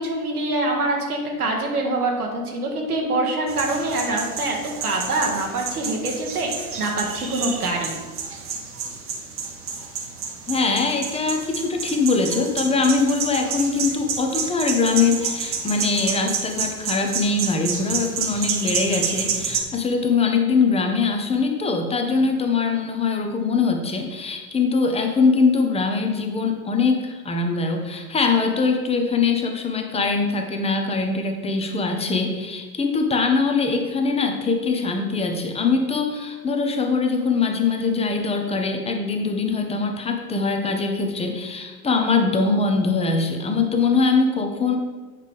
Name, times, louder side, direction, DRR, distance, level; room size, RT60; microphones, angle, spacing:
voice 1, 0.0-7.9, right 2 dB, 80° right, 0 dB, 1.4 m, -25 dB
sound 1, 3.5-19.6, right 5 dB, 30° right, 1.0 m, -29 dB
voice 2, 10.5-44.8, left 4 dB, 15° left, 4 dB, 0.8 m, -22 dB
8.2 x 5.1 x 3.4 m, 1.3 s
figure-of-eight pair, 85°, 45 cm